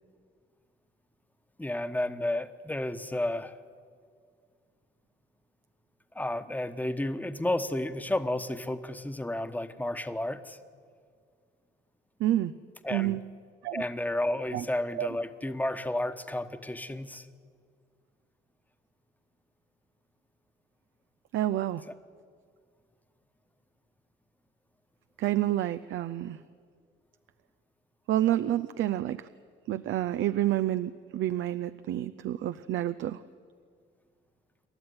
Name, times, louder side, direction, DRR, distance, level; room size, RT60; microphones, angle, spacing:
voice 1, 1.6-3.5 6.1-10.6 12.8-13.2 13.7-17.3, left 1 dB, 10° left, 9 dB, 1.2 m, -32 dB
voice 2, 12.2-12.5 12.9-13.2 13.6-13.8 14.5-14.7 15.0-15.1 21.3-21.8 25.2-26.4 28.1-29.3 29.7-33.2, right 13 dB, 75° right, 12 dB, 0.6 m, -29 dB
27.5 x 12.0 x 9.6 m, 2.1 s
cardioid pair, 90°, 20 cm